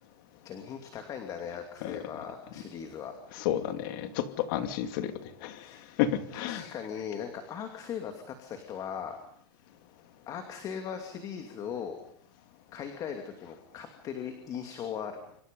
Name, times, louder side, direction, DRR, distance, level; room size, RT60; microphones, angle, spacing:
voice 1, 0.4-3.1 5.6-5.8 6.3-9.2 10.3-12.0 12.7-15.2, left 8 dB, 25° left, 5 dB, 2.7 m, -39 dB
voice 2, 3.4-5.1 5.4-5.6 6.0-6.7, left 11 dB, 50° left, 8 dB, 2.6 m, -31 dB
26.5 x 26.0 x 5.4 m, 0.69 s
supercardioid pair, 155°, 14 cm